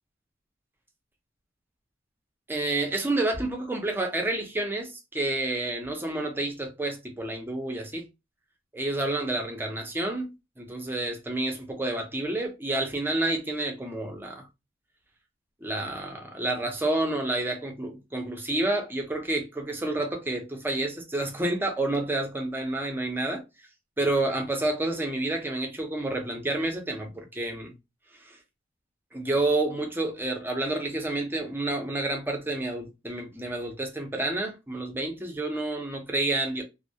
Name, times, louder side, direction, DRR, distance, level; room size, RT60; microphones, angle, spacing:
voice 1, 2.5-8.1 8.7-14.5 15.6-23.4 24.0-27.7 28.2-28.4 29.1-36.6, right 2 dB, 10° right, 0.5 m, -29 dB
2.2 x 2.0 x 2.7 m
head